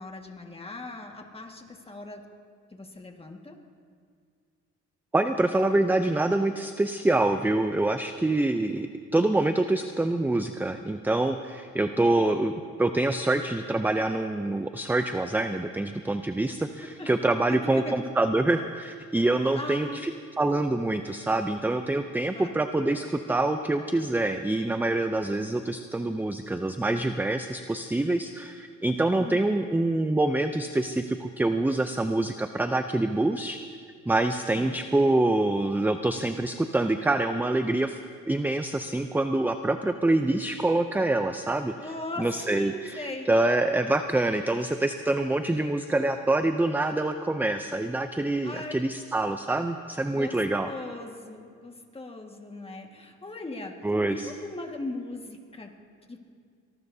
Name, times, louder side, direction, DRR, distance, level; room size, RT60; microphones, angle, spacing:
voice 1, 0.0-2.3 2.7-3.6 12.0-12.1 17.0-18.0 19.5-20.0 22.3-22.6 29.2-29.4 34.5-34.8 41.8-43.3 48.4-48.9 50.1-50.4 50.6-53.8 54.1-55.8 56.1-56.2, left 2 dB, 20° left, 2 dB, 1.8 m, -38 dB
voice 2, 5.1-8.9 9.1-12.5 12.8-20.1 20.4-33.8 34.1-38.0 38.3-41.7 42.2-50.7 53.8-54.3, right 2 dB, 5° right, 8 dB, 0.5 m, -26 dB
24.5 x 19.0 x 2.8 m, 2.1 s
cardioid pair, 90°, 30 cm